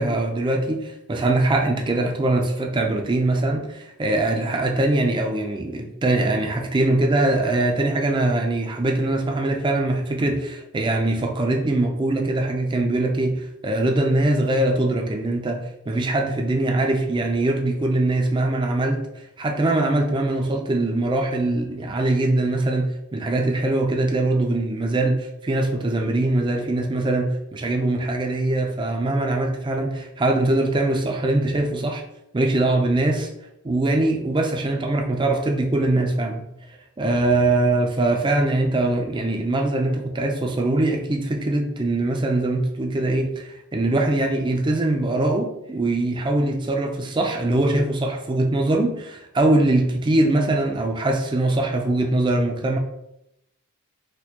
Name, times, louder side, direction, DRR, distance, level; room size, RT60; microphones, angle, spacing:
voice 1, 0.0-32.0 32.3-33.3 33.6-36.4 37.0-52.8, right 2 dB, 20° right, 3 dB, 0.4 m, -22 dB
4.3 x 2.2 x 2.8 m, 0.83 s
head